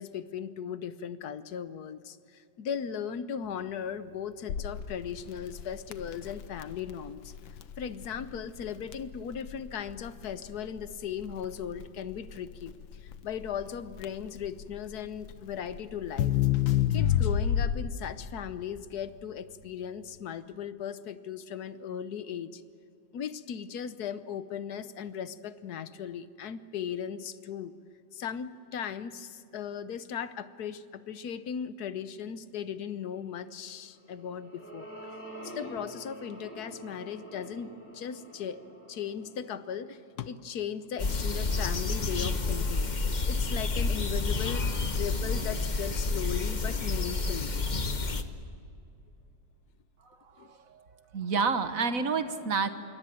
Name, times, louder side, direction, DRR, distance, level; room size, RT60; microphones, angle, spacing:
voice 1, 0.0-7.3 7.8-12.7 13.0-16.3 16.9-22.6 23.1-27.7 28.1-34.9 35.4-38.6 38.9-42.9 43.3-47.5 50.4-50.5, left 8 dB, 60° left, 13 dB, 1.3 m, -37 dB
Crackle, 4.5-18.1, left 10 dB, 85° left, 1.8 m, -31 dB
sound 1, 33.9-40.4, right 1 dB, 5° left, 4.3 m, -47 dB
sound 2, 41.0-48.2, left 3 dB, 30° left, 1.0 m, -29 dB
voice 2, 50.4-50.8 51.1-52.7, right 5 dB, 50° right, 9 dB, 1.6 m, -29 dB
26.5 x 23.0 x 7.8 m, 2.6 s
omnidirectional pair, 2.1 m